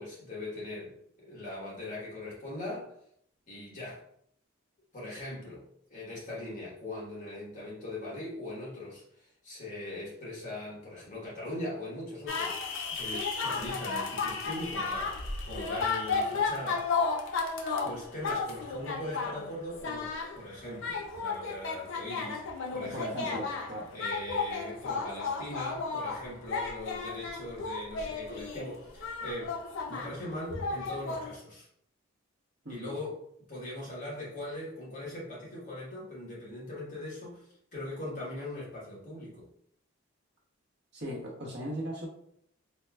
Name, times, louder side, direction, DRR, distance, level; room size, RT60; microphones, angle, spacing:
voice 1, 0.0-2.9 3.5-4.0 4.9-15.1 15.5-16.9 17.8-22.4 22.7-23.5 23.9-29.6 29.9-31.7 32.7-33.2 33.5-39.5, left 1 dB, 35° left, -6 dB, 1.2 m, -40 dB
sound 1, 12.3-19.5 19.7-20.4 20.7-30.2 30.5-31.3, left 4 dB, 60° left, 0.5 m, -33 dB
voice 2, 22.8-23.9 32.6-32.9 40.9-42.1, equal, 55° right, -2 dB, 0.9 m, -38 dB
4.1 x 2.2 x 2.2 m, 0.69 s
head